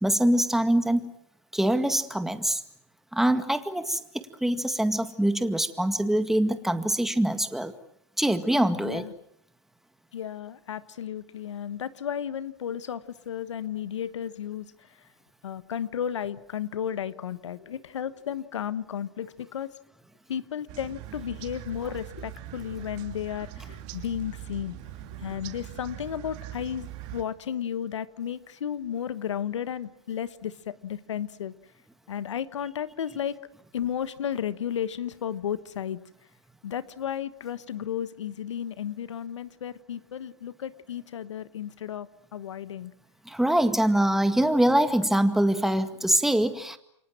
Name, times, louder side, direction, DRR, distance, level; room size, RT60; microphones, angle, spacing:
voice 1, 0.0-1.1 1.5-2.6 3.1-7.7 8.2-9.1 43.3-46.8, right 1 dB, ahead, 9 dB, 2.0 m, -24 dB
voice 2, 10.1-14.7 15.4-19.7 20.3-24.8 25.2-31.5 32.1-33.4 33.7-36.0 36.6-42.9, left 9 dB, 90° left, 15 dB, 1.2 m, -33 dB
sound 1, 20.7-27.2, right 12 dB, 50° right, 3.2 m, -41 dB
29.0 x 24.5 x 7.6 m, 0.72 s
hypercardioid pair, 115°, 15 cm